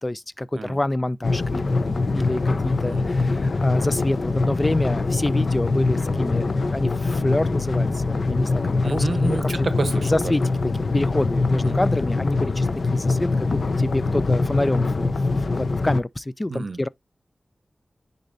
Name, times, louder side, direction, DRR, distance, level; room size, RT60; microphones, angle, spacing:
voice 1, 0.0-9.7 10.0-10.5 10.9-16.9, left 1 dB, 20° left, 0.3 m, -27 dB
sound 1, 1.2-16.0, left 3 dB, 60° left, 0.7 m, -23 dB
voice 2, 8.8-10.3 11.6-11.8 16.5-16.8, right 3 dB, 65° right, 0.9 m, -29 dB
9.9 x 4.1 x 2.6 m
wide cardioid pair, 105°, 0 cm